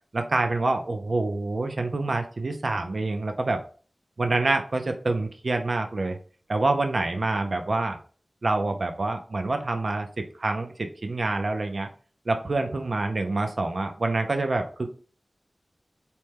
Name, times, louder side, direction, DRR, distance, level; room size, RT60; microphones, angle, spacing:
voice 1, 0.1-3.6 4.2-6.2 6.5-8.0 8.4-11.9 12.3-14.9, right 2 dB, 60° right, 6 dB, 0.4 m, -26 dB
4.2 x 2.1 x 3.3 m, 0.40 s
wide cardioid pair, 75°, 0 cm